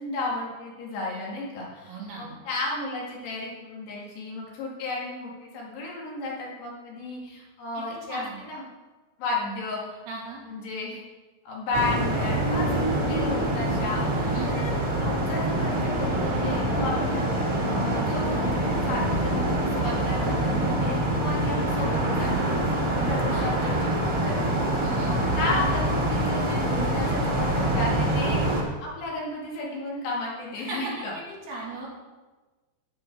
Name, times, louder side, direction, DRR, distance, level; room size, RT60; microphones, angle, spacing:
voice 1, 0.0-8.6 9.2-10.0 10.4-11.0 11.5-18.4 18.8-23.7 24.0-31.1, left 2 dB, 65° left, -3 dB, 3.8 m, -33 dB
voice 2, 1.9-2.3 7.7-7.8 8.1-8.4 10.1-10.4 14.2-14.5 23.3-23.9 24.8-25.1 30.6-30.9 31.3-31.9, right 3 dB, 60° right, -5 dB, 4.4 m, -37 dB
sound 1, 11.7-28.6, right 1 dB, 85° right, 0.7 m, -25 dB
11.5 x 9.5 x 4.6 m, 1.2 s
omnidirectional pair, 5.6 m